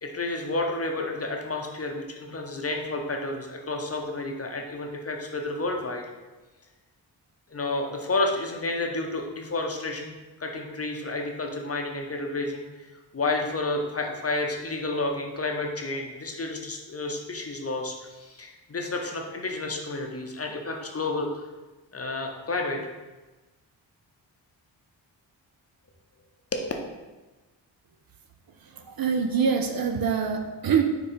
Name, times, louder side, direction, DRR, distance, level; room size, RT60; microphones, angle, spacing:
voice 1, 0.0-6.0 7.5-12.6 13.1-21.5 21.9-22.8 26.5-26.7, left 2 dB, 30° left, 2 dB, 0.8 m, -30 dB
voice 2, 28.6-30.8, right 6 dB, 50° right, 5 dB, 0.6 m, -25 dB
5.0 x 2.4 x 4.3 m, 1.2 s
cardioid pair, 45°, 46 cm